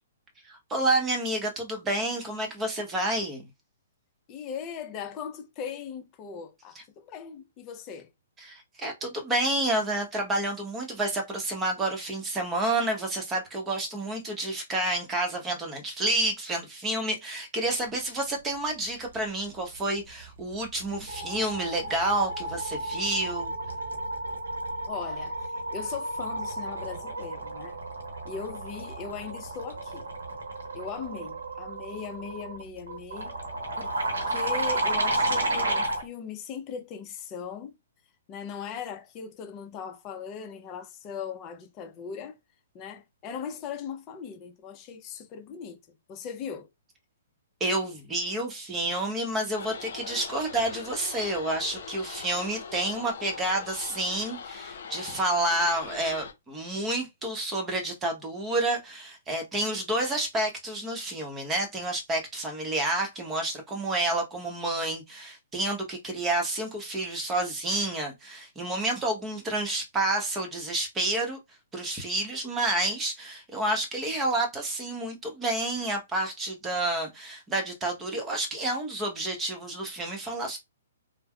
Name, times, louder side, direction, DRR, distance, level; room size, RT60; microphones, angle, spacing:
voice 1, 0.4-3.4 8.4-23.5 47.6-71.4 71.7-80.6, right 1 dB, 15° right, 0.9 m, -29 dB
voice 2, 4.3-8.1 24.9-27.7 28.2-30.1 30.7-33.3 33.7-33.9 34.3-37.8 38.3-42.4 42.7-45.8 46.1-46.7, left 7 dB, 25° left, 0.6 m, -39 dB
sound 1, 20.2-20.5 20.8-36.1, right 1 dB, 85° right, 0.9 m, -32 dB
sound 2, 49.6-56.3, left 6 dB, 65° left, 0.7 m, -41 dB
3.3 x 2.1 x 2.2 m
hypercardioid pair, 140°, 0 cm